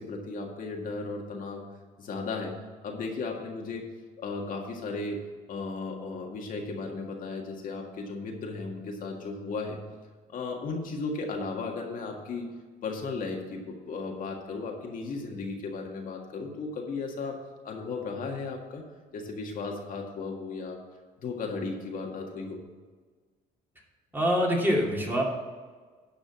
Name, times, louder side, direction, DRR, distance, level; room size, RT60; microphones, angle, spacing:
voice 1, 0.0-1.6 2.0-3.9 4.2-5.2 5.5-9.9 10.3-12.5 12.8-17.4 17.6-18.8 19.1-20.8 21.2-22.6, left 3 dB, 55° left, 1 dB, 1.9 m, -35 dB
voice 2, 24.1-25.2, equal, 10° right, -2 dB, 2.5 m, -25 dB
11.5 x 5.2 x 7.4 m, 1.5 s
cardioid pair, 110°, 17 cm